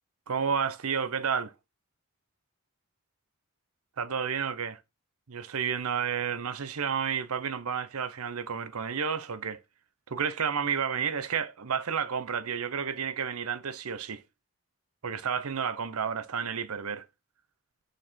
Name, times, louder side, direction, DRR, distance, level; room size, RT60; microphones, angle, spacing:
voice 1, 0.3-1.5 4.0-4.8 5.3-9.6 10.1-14.2 15.0-17.0, right 6 dB, 90° right, 0.7 m, -31 dB
6.3 x 4.4 x 6.2 m
head